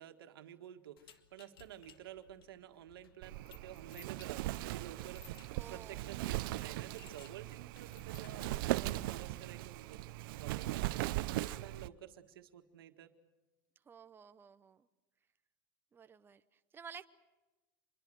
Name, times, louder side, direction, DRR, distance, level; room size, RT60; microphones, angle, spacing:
voice 1, 0.0-13.1, right 11 dB, 85° right, 7 dB, 1.8 m, -51 dB
sound 1, 1.0-9.2, left 8 dB, 85° left, 1.8 m, -61 dB
Wind, 3.2-11.9, right 17 dB, 70° right, 0.7 m, -39 dB
voice 2, 5.5-6.0 13.9-14.9 15.9-17.0, right 7 dB, 20° right, 10 dB, 0.8 m, -53 dB
25.5 x 22.0 x 7.7 m, 1.1 s
supercardioid pair, 120°, 12 cm